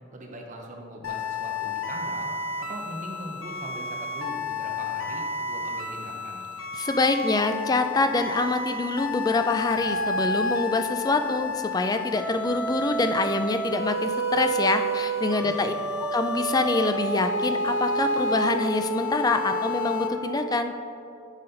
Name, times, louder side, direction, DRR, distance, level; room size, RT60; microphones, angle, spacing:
voice 1, 0.1-6.4 15.4-15.7, right 1 dB, 40° right, 1 dB, 0.8 m, -41 dB
sound 1, 1.0-20.1, left 1 dB, 90° left, 0.8 m, -30 dB
voice 2, 6.8-15.7 16.1-20.7, left 3 dB, 20° left, 8 dB, 0.3 m, -25 dB
10.5 x 4.1 x 3.9 m, 2.6 s
head